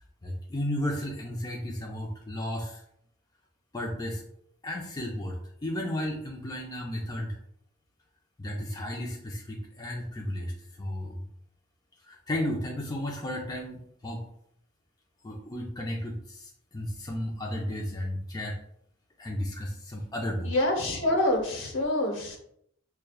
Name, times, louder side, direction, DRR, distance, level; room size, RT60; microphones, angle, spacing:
voice 1, 0.2-2.8 3.7-4.2 4.6-7.4 8.4-10.5 10.8-11.2 12.1-14.2 15.2-18.6 19.2-20.5, left 1 dB, 20° left, -2 dB, 0.5 m, -33 dB
voice 2, 20.4-22.4, left 1 dB, 65° left, 1 dB, 1.0 m, -26 dB
6.4 x 2.2 x 2.3 m, 0.71 s
head